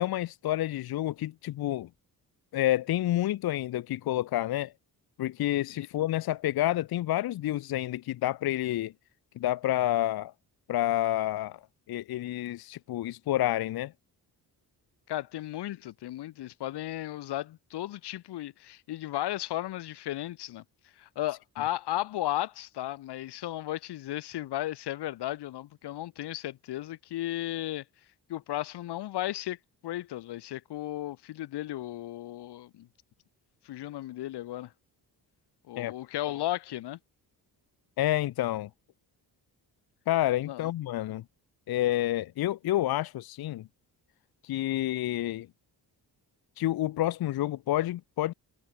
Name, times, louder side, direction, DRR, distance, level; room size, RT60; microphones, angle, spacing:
voice 1, 0.0-1.9 2.5-4.7 5.2-8.9 9.4-10.3 10.7-11.6 11.9-13.9 35.8-35.9 38.0-38.7 40.1-41.2 41.7-43.7 44.4-45.5 46.6-48.3, left 14 dB, 65° left, 0.6 m, -29 dB
voice 2, 15.1-20.6 21.0-27.8 28.3-29.6 29.8-32.9 33.6-34.7 35.7-37.0 40.4-40.7, left 14 dB, 85° left, 0.9 m, -35 dB
cardioid pair, 130°, 40 cm